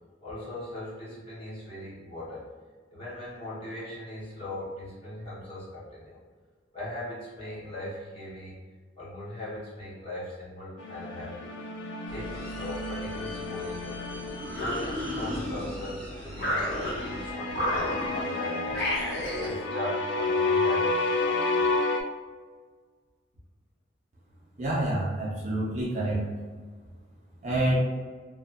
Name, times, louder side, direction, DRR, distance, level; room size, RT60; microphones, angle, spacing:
voice 1, 0.2-2.4 2.9-6.2 6.7-8.6 9.0-11.5 12.1-14.0 14.5-18.9 19.4-21.8, left 1 dB, 30° left, -9 dB, 1.0 m, -39 dB
sound 1, 10.8-15.1 16.6-22.0, left 3 dB, 80° left, 0.3 m, -30 dB
sound 2, 12.1-17.3, equal, 10° left, 0.8 m, -43 dB
sound 3, 14.4-15.9 16.3-17.2 17.5-18.3 18.7-19.6, left 1 dB, 65° left, 1.0 m, -31 dB
voice 2, 24.6-26.2 27.4-27.8, right 1 dB, 40° right, -6 dB, 0.5 m, -27 dB
2.6 x 2.4 x 2.4 m, 1.5 s
head